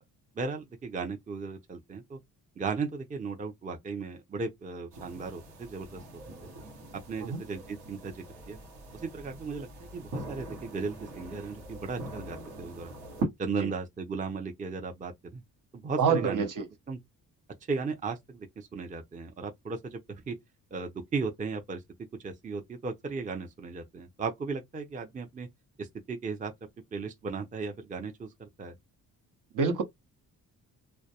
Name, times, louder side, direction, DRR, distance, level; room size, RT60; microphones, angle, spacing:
voice 1, 0.4-2.2 2.6-6.0 6.9-8.6 8.9-12.9 13.4-15.4 15.7-16.5 16.9-17.0 17.7-20.3 20.7-21.8 22.2-25.5 25.8-26.5 26.9-28.7, right 4 dB, 20° right, 0.5 m, -36 dB
sound 1, 4.9-13.2, right 2 dB, 85° right, 1.0 m, -42 dB
voice 2, 16.0-16.6 29.5-29.8, right 6 dB, 55° right, 0.8 m, -26 dB
2.2 x 2.1 x 2.8 m
cardioid pair, 70°, 37 cm